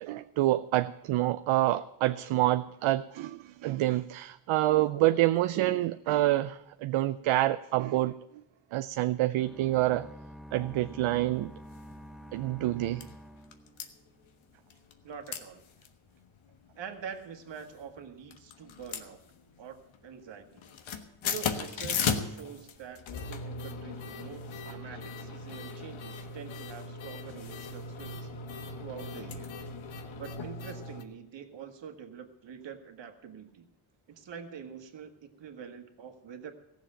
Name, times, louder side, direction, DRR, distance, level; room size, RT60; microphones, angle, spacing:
voice 1, 0.0-8.2 8.7-10.1 10.5-11.5 12.3-13.1, right 15 dB, 80° right, 0.6 m, -27 dB
sound 1, 9.4-14.4, equal, ahead, 0.7 m, -48 dB
sound 2, 11.7-11.9 12.3-12.4 12.6-13.1 13.5-13.9 14.7-15.0 15.3-15.4 15.8-15.9 16.4-16.7 17.4-18.0 18.3-19.7 19.9-20.3 20.5-31.0, left 5 dB, 75° left, 1.4 m, -37 dB
voice 2, 15.0-15.6 16.8-19.2 19.6-20.6 21.2-28.3 28.8-29.5 30.2-33.7 34.1-36.5, right 7 dB, 60° right, 1.8 m, -45 dB
15.5 x 7.3 x 8.8 m
cardioid pair, 90°, 48 cm